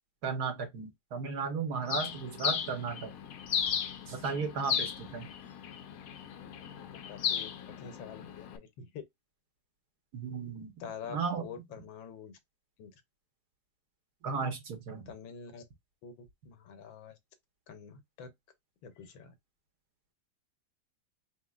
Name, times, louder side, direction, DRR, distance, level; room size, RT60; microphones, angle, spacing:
voice 1, 0.2-3.1 4.1-5.3 10.1-10.7 11.0-11.5 14.2-15.0, right 5 dB, 60° right, 1.5 m, -35 dB
Bird, 1.9-8.6, left 8 dB, 65° left, 0.9 m, -36 dB
voice 2, 6.7-7.5 7.8-9.0 10.8-12.4 12.8-12.9 15.1-15.6 16.0-16.1 16.4-17.1 17.7-18.3 18.8-19.3, left 7 dB, 90° left, 1.6 m, -46 dB
4.3 x 3.8 x 2.4 m
omnidirectional pair, 2.0 m